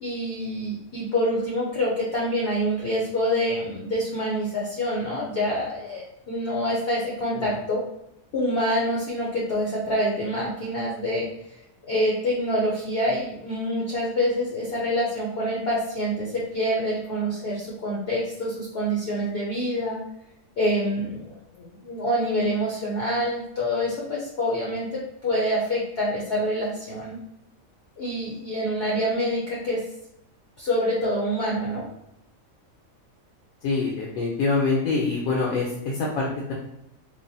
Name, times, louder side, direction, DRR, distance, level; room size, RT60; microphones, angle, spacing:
voice 1, 0.0-7.8 8.3-11.3 11.9-20.0 20.6-27.2 28.0-29.8 30.6-31.8, equal, 60° left, -4 dB, 0.7 m, -26 dB
voice 2, 33.6-36.5, left 3 dB, 80° left, -3 dB, 1.0 m, -25 dB
3.3 x 2.1 x 2.6 m, 0.81 s
omnidirectional pair, 1.4 m